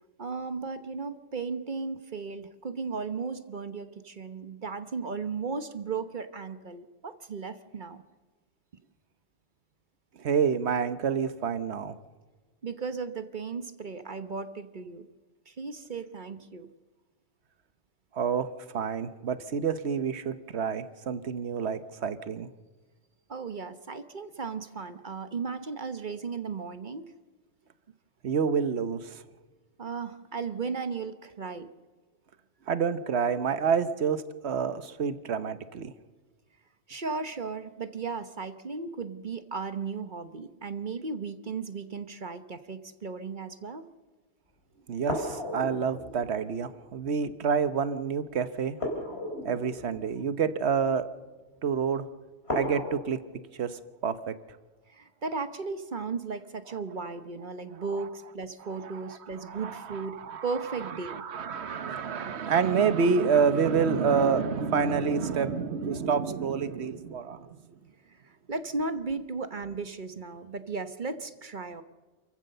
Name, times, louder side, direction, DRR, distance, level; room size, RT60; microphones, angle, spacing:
voice 1, 0.2-8.0 12.6-15.1 15.5-16.7 23.3-27.0 29.8-31.7 36.9-43.9 54.9-60.2 60.4-61.2 68.2-71.8, right 4 dB, 45° right, 10 dB, 1.1 m, -35 dB
voice 2, 10.2-12.0 18.1-22.5 28.2-29.2 32.7-35.9 44.9-48.8 49.4-51.0 51.6-52.0 52.5-53.2 53.6-54.3 58.8-59.2 59.4-67.6, right 6 dB, 70° right, 12 dB, 1.3 m, -28 dB
sound 1, 45.0-47.2 48.8-51.0 52.4-52.9, left 1 dB, 65° left, 4.5 m, -36 dB
28.5 x 15.0 x 6.7 m, 1.4 s
omnidirectional pair, 1.1 m